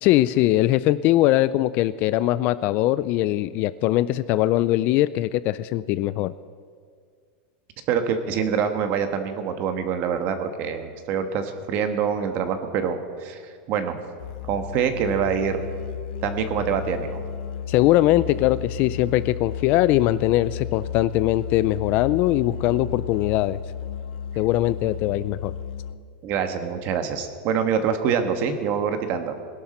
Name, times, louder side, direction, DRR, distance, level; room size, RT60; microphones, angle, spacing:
voice 1, 0.0-6.3 17.7-23.6 24.4-25.5, left 15 dB, 35° left, 16 dB, 0.3 m, -21 dB
voice 2, 7.9-13.4 13.7-14.0 14.5-15.6 16.2-17.2 26.2-29.3, right 7 dB, 35° right, 8 dB, 1.3 m, -25 dB
Musical instrument, 14.2-26.2, left 8 dB, 60° left, 0.8 m, -33 dB
21.0 x 11.5 x 4.3 m, 2.1 s
supercardioid pair, 165°, 5 cm